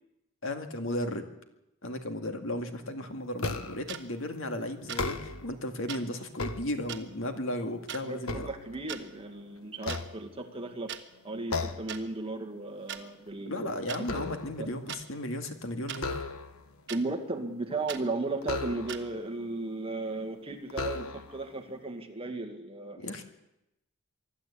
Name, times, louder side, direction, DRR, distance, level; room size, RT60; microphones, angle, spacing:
voice 1, 0.4-1.3 1.8-8.5 13.4-16.1 23.0-23.2, left 1 dB, 65° left, 6 dB, 2.1 m, -35 dB
sound 1, 3.4-4.0 4.8-5.6 6.1-7.2 7.7-9.2 9.8-10.7 11.5-12.0 12.4-12.6 13.0-14.7 15.9-16.7 18.4-19.2 20.0-20.1 20.7-21.5, left 3 dB, 85° left, 1.4 m, -36 dB
sound 2, 3.9-4.0 4.9-5.0 5.9-6.0 6.9-7.0 7.9-8.0 8.7-9.0 9.9-10.0 10.9-11.0 11.9-12.0 12.9-13.0 13.9-14.0 14.9-15.0 15.9-16.0 16.9-17.0 17.9-18.0 18.9-19.0, right 9 dB, 55° right, 1.4 m, -38 dB
voice 2, 8.0-11.0 11.2-13.7 14.1-14.7 16.9-23.0, right 2 dB, 25° right, 5 dB, 2.0 m, -35 dB
24.0 x 13.0 x 8.5 m, 0.89 s
head